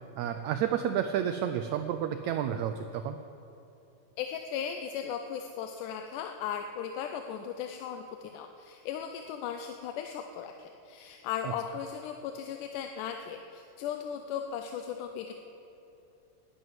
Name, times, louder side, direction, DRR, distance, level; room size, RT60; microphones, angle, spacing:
voice 1, 0.2-3.2, right 9 dB, 85° right, 8 dB, 1.6 m, -30 dB
voice 2, 4.2-15.3, left 8 dB, 80° left, 5 dB, 2.1 m, -37 dB
11.5 x 10.5 x 9.4 m, 2.9 s
omnidirectional pair, 3.9 m